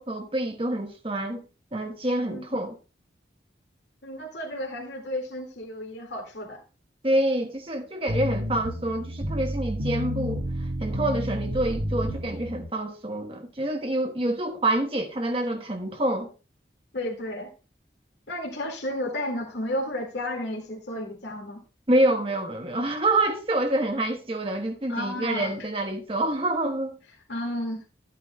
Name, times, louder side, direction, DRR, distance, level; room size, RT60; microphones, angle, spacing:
voice 1, 0.0-1.4 1.7-2.8 7.0-10.4 10.8-16.3 21.9-27.0, right 1 dB, 30° right, 1.1 m, -27 dB
voice 2, 2.3-2.6 4.0-6.6 16.9-17.5 18.3-21.6 24.9-25.5 27.3-27.8, left 1 dB, 75° left, 2.0 m, -32 dB
sound 1, 8.1-12.6, equal, 85° right, 1.6 m, -30 dB
13.0 x 9.4 x 2.2 m
head